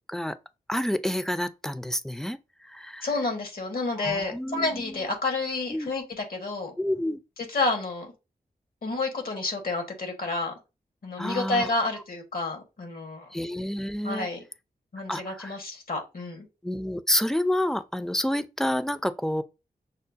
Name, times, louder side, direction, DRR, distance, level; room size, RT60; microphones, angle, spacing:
voice 1, 0.7-2.4 2.7-3.1 4.0-5.0 5.7-5.9 6.8-7.2 11.2-11.7 13.3-14.3 15.1-15.5 16.6-19.4, left 1 dB, 5° left, 0.4 m, -29 dB
voice 2, 3.0-6.7 7.4-8.1 8.8-10.5 11.0-13.3 14.0-14.4 14.9-16.5, left 3 dB, 70° left, 1.4 m, -30 dB
6.4 x 2.1 x 2.6 m
cardioid pair, 60°, 16 cm